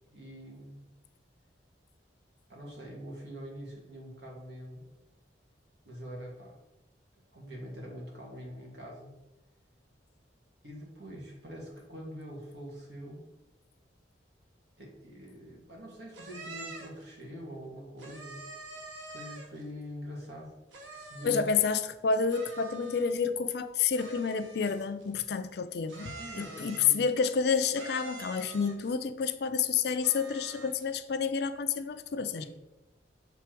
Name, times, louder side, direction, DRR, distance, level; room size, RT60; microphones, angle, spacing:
voice 1, 0.1-0.9 2.5-4.8 5.8-6.6 7.3-9.1 10.6-13.2 14.8-18.4 19.1-20.6 20.9-21.5 26.1-27.0 32.4-32.5, equal, 70° right, -2 dB, 1.9 m, -44 dB
sound 1, 16.1-17.0 18.0-19.6 20.7-21.6 22.3-23.3 23.9-25.1 25.9-27.1 27.7-28.9 30.0-30.9, right 2 dB, 90° right, 1.1 m, -46 dB
voice 2, 21.2-32.4, left 6 dB, 60° left, 10 dB, 0.4 m, -29 dB
7.1 x 3.4 x 4.5 m, 0.95 s
head